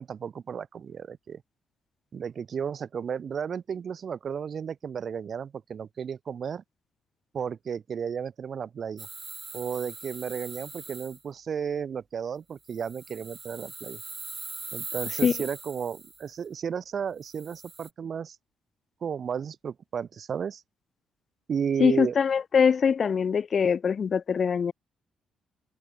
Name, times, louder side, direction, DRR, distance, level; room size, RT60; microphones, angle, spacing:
voice 1, 0.0-1.4 2.1-6.6 7.3-9.1 9.5-14.0 14.7-18.4 19.0-20.6 21.5-22.1, right 7 dB, 50° right, 0.8 m, -33 dB
sound 1, 9.0-11.2 12.7-16.2 17.2-17.9, right 3 dB, 25° right, 1.6 m, -40 dB
voice 2, 21.8-24.7, left 6 dB, 45° left, 0.5 m, -23 dB
open air
cardioid pair, 90°, 0 cm